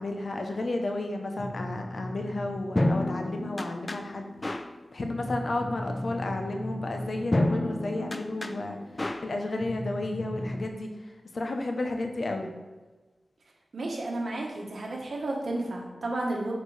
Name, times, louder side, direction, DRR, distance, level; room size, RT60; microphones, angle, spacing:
voice 1, 0.0-4.3 4.9-8.8 9.2-10.9 11.3-12.5, left 2 dB, 65° left, 4 dB, 0.9 m, -32 dB
sound 1, 1.4-10.7, left 1 dB, 30° left, 0.4 m, -32 dB
voice 2, 13.7-16.5, right 2 dB, 70° right, -1 dB, 1.3 m, -32 dB
6.6 x 4.8 x 3.3 m, 1.2 s
cardioid pair, 45°, 0 cm